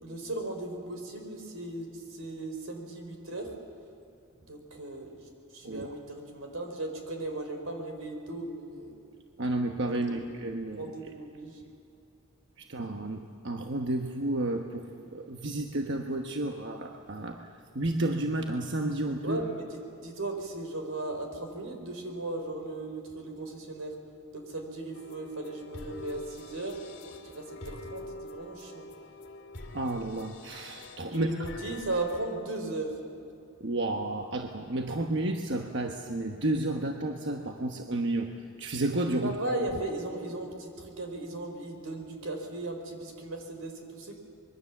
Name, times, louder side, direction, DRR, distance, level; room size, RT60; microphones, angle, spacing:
voice 1, 0.0-3.5 4.5-5.1 5.5-8.9 10.1-10.2 10.8-11.6 19.2-23.9 24.3-26.8 27.2-28.9 31.1-32.9 39.2-44.2, right 2 dB, 90° right, 4 dB, 4.2 m, -36 dB
voice 2, 9.4-10.9 12.7-17.5 17.7-19.4 29.7-31.3 33.6-38.3 38.6-39.3, right 2 dB, 60° right, 3 dB, 1.2 m, -31 dB
sound 1, 24.9-32.4, left 2 dB, 60° left, 2.3 m, -46 dB
25.0 x 22.0 x 7.2 m, 2.7 s
head